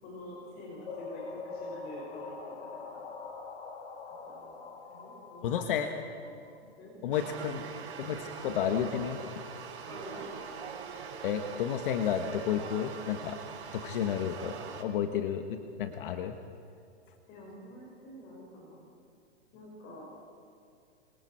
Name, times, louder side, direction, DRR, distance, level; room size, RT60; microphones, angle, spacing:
voice 1, 0.0-3.1 4.2-4.5 4.9-5.5 5.8-5.9 6.8-7.0 7.3-7.4 9.9-10.3 17.3-18.9 19.5-20.1, left 1 dB, 30° left, -3 dB, 5.7 m, -47 dB
sound 1, 0.9-6.6, left 4 dB, 65° left, 4.0 m, -43 dB
voice 2, 5.4-5.9 7.0-7.6 8.0-9.2 11.2-13.4 13.7-16.3, left 8 dB, 50° left, 6 dB, 1.5 m, -31 dB
sound 2, 7.1-14.8, right 6 dB, 70° right, 5.3 m, -42 dB
28.5 x 27.0 x 4.5 m, 2.6 s
hypercardioid pair, 150°, 35 cm